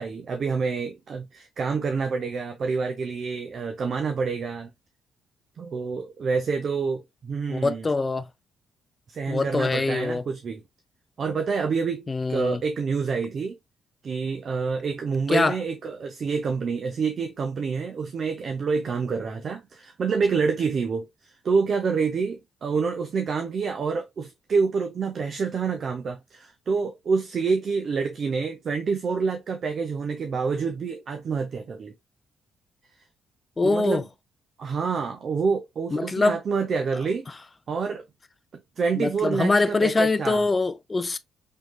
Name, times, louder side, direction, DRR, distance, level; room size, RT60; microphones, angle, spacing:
voice 1, 0.0-4.7 5.6-7.9 9.1-10.6 11.2-13.6 14.0-31.9 33.6-34.0 34.6-37.3 37.7-38.0 38.8-40.4, right 5 dB, 50° right, 0.5 m, -27 dB
voice 2, 7.5-8.3 9.3-10.2 12.1-12.6 15.3-15.6 33.6-34.0 35.9-36.4 39.0-41.2, left 3 dB, 25° left, 0.3 m, -23 dB
3.6 x 3.1 x 2.2 m
cardioid pair, 90°, 0 cm